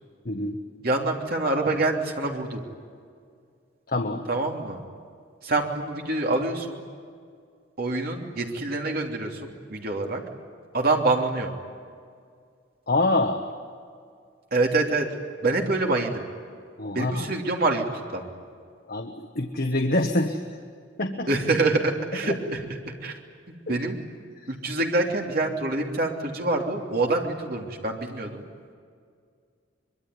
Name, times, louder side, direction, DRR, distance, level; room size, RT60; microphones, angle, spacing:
voice 1, 0.2-0.9 3.9-4.2 12.9-13.4 16.8-17.3 18.9-20.4 21.0-21.3 22.2-22.4 23.7-23.8, left 2 dB, 50° left, 5 dB, 1.4 m, -26 dB
voice 2, 0.8-2.6 4.3-4.8 5.4-6.8 7.8-10.2 10.7-11.5 14.5-15.1 15.4-16.2 16.9-18.2 21.3-23.2 23.7-24.0 24.5-28.4, right 2 dB, 50° right, 1 dB, 3.2 m, -26 dB
24.5 x 22.5 x 9.6 m, 2.2 s
head